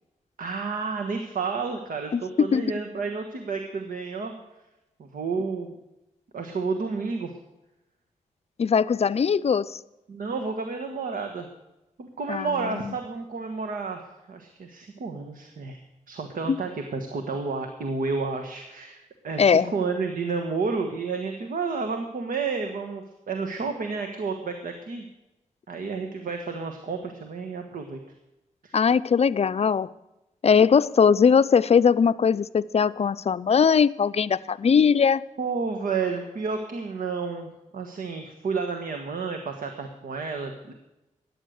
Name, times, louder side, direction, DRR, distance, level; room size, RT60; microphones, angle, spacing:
voice 1, 0.4-4.3 5.0-5.7 6.3-7.3 10.1-11.5 12.0-15.8 16.1-25.1 25.7-28.0 28.6-28.8 35.4-40.7, right 4 dB, 80° right, 4 dB, 1.4 m, -31 dB
voice 2, 2.1-2.7 8.6-9.8 12.3-12.5 12.8-12.9 16.5-16.6 19.4-19.7 28.7-29.9 30.4-35.2, left 6 dB, 50° left, 15 dB, 0.5 m, -20 dB
14.0 x 10.0 x 6.5 m, 0.95 s
cardioid pair, 65°, 14 cm